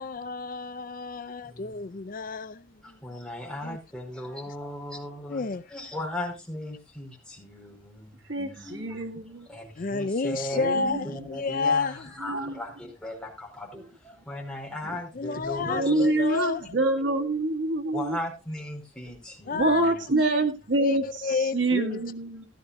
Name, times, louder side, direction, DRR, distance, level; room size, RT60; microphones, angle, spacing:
voice 1, 0.0-3.0 3.6-3.8 5.3-5.6 9.8-12.1 15.1-16.7 19.5-20.4 20.8-22.0, left 4 dB, 45° left, 0.5 m, -31 dB
voice 2, 1.5-1.8 2.8-8.2 8.6-9.0 9.5-10.7 11.0-16.2 17.9-20.0, left 1 dB, 5° left, 4.9 m, -37 dB
voice 3, 8.3-9.5 10.5-11.1 12.2-12.6 14.8-15.0 15.6-18.2 19.5-22.5, right 2 dB, 80° right, 2.3 m, -26 dB
16.0 x 12.5 x 2.6 m
head